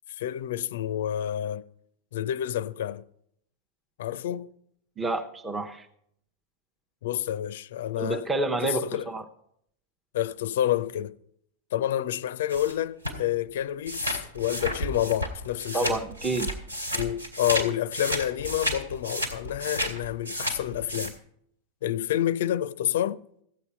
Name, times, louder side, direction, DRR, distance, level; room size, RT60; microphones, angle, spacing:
voice 1, 0.1-1.6 2.1-3.1 4.0-4.5 7.0-8.2 8.6-9.1 10.1-11.1 11.7-16.0 16.9-21.2 21.8-23.2, left 11 dB, 55° left, 0.5 m, -29 dB
voice 2, 5.0-5.9 8.0-9.2 15.7-16.5, right 2 dB, 15° right, 0.8 m, -29 dB
sound 1, 12.5-12.7 13.0-13.2 13.9-17.6 17.9-21.1, equal, 85° right, 2.7 m, -32 dB
15.5 x 8.3 x 5.6 m
figure-of-eight pair, 90°, 0 cm